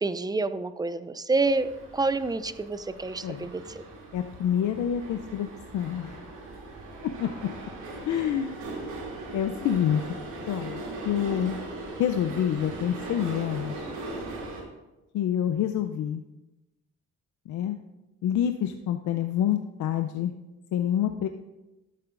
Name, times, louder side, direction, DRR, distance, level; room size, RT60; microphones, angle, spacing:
voice 1, 0.0-3.8, right 3 dB, 15° right, 13 dB, 0.4 m, -28 dB
sound 1, 1.4-14.6, right 2 dB, 75° right, 2.7 m, -39 dB
voice 2, 4.1-5.5 5.7-6.1 7.0-7.3 8.1-8.6 9.3-10.0 10.5-11.6 12.0-13.9 15.1-16.2 17.5-17.8 18.2-20.3 20.7-21.3, left 10 dB, 70° left, 8 dB, 0.5 m, -27 dB
12.5 x 7.7 x 2.5 m, 1.0 s
cardioid pair, 90°, 30 cm